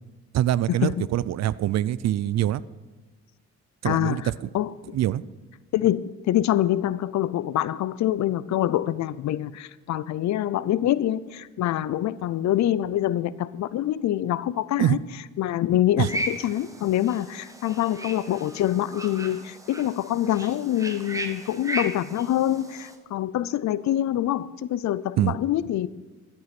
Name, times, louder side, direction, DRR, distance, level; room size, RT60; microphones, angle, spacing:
voice 1, 0.3-2.6 3.8-4.5 4.9-5.2 14.8-15.0 16.0-16.1 25.2-25.3, right 13 dB, 60° right, 0.5 m, -24 dB
voice 2, 3.8-4.3 4.5-4.7 5.7-15.0 15.4-25.9, left 12 dB, 65° left, 0.5 m, -25 dB
sound 1, 16.0-22.9, right 1 dB, 10° right, 1.3 m, -36 dB
12.5 x 8.3 x 5.9 m
cardioid pair, 90°, 30 cm